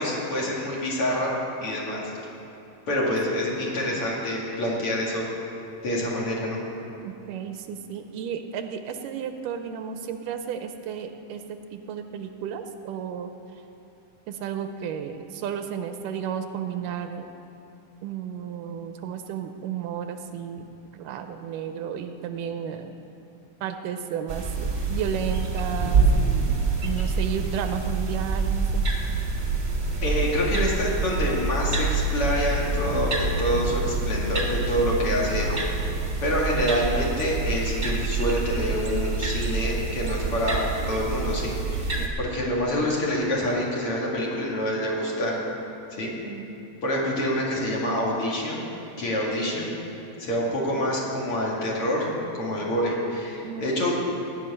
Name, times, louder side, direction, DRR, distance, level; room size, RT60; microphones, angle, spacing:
voice 1, 0.0-1.3 1.6-2.1 2.9-5.3 5.8-6.6 30.0-35.5 36.2-45.4 46.0-46.1 46.8-48.6 49.0-49.7 50.2-54.0, equal, 45° left, -4 dB, 2.8 m, -26 dB
voice 2, 3.3-3.8 7.0-13.3 14.3-17.3 18.0-20.7 20.9-22.9 23.6-28.8 42.0-42.3 46.1-46.6 53.4-53.7, right 8 dB, 85° right, 8 dB, 2.3 m, -33 dB
sound 1, 24.3-42.1, right 3 dB, 35° right, 1.0 m, -26 dB
16.5 x 6.3 x 9.7 m, 2.9 s
omnidirectional pair, 3.9 m